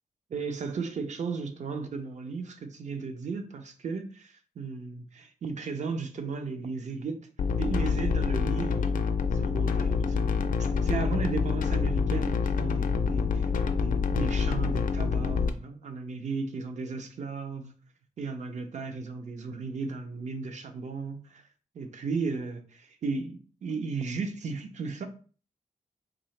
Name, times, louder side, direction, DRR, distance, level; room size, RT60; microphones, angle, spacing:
voice 1, 0.3-7.3 7.6-17.7 18.2-21.4 21.7-25.1, right 4 dB, 60° right, 0.6 m, -35 dB
sound 1, 7.4-15.5, left 5 dB, 80° left, 0.4 m, -27 dB
3.9 x 2.8 x 3.2 m
wide cardioid pair, 170°, 14 cm